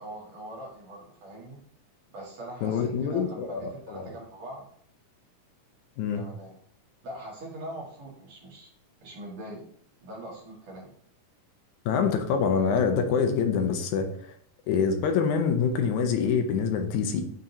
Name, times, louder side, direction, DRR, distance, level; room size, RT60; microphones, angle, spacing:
voice 1, 0.0-1.6 2.1-4.7 6.1-6.6 7.0-8.7 9.0-9.6 10.0-10.9, right 1 dB, 60° right, -4 dB, 2.9 m, -42 dB
voice 2, 2.6-4.1 6.0-6.2 11.9-14.1 14.7-17.2, left 6 dB, 75° left, 6 dB, 2.1 m, -25 dB
8.8 x 3.9 x 2.8 m, 0.62 s
omnidirectional pair, 3.6 m